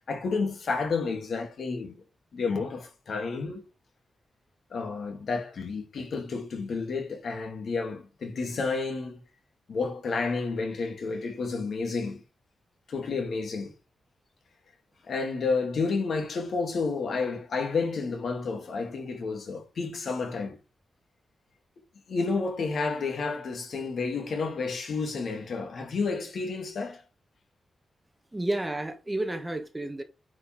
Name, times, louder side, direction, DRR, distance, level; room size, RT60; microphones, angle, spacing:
voice 1, 0.1-2.0 2.3-3.6 4.7-9.2 9.7-12.2 12.9-13.7 15.1-20.6 22.1-27.0, left 4 dB, 60° left, 3.0 m, -30 dB
voice 2, 28.3-30.0, right 1 dB, 10° right, 1.3 m, -31 dB
9.4 x 5.5 x 3.7 m
wide cardioid pair, 150°, 0 cm